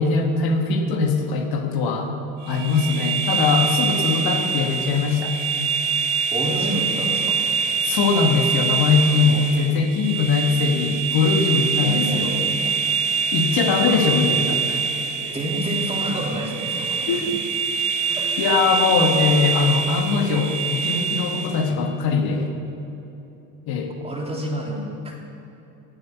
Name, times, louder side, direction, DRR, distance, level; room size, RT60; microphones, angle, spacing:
voice 1, 0.0-2.1 2.5-5.4 7.8-12.3 13.3-14.8 15.2-15.3 17.1-17.3 18.4-22.5 23.7-23.9, left 4 dB, 65° left, 3 dB, 1.8 m, -21 dB
sound 1, 2.4-21.7, right 6 dB, 85° right, 2.3 m, -25 dB
voice 2, 6.3-7.7 11.7-12.8 13.8-14.2 15.3-17.3 18.1-18.5 24.0-25.1, equal, 15° right, -2 dB, 3.0 m, -29 dB
18.0 x 8.3 x 5.9 m, 3.0 s
supercardioid pair, 105°, 40 cm